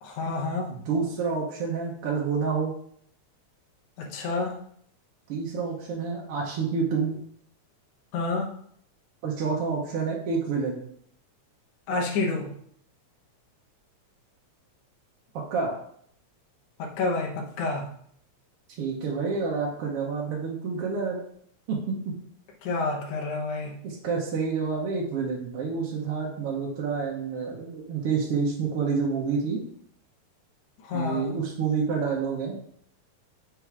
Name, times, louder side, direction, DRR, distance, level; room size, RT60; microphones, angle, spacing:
voice 1, 0.0-0.7 4.0-4.6 8.1-8.5 11.9-12.5 16.8-17.9 22.6-23.8 30.8-31.3, left 3 dB, 85° left, 0 dB, 2.3 m, -29 dB
voice 2, 0.7-2.7 5.3-7.1 9.2-10.8 15.5-15.7 18.8-21.2 21.7-22.1 23.8-29.6 30.9-32.6, right 5 dB, 65° right, -3 dB, 1.6 m, -28 dB
5.7 x 3.8 x 4.6 m, 0.65 s
omnidirectional pair, 3.3 m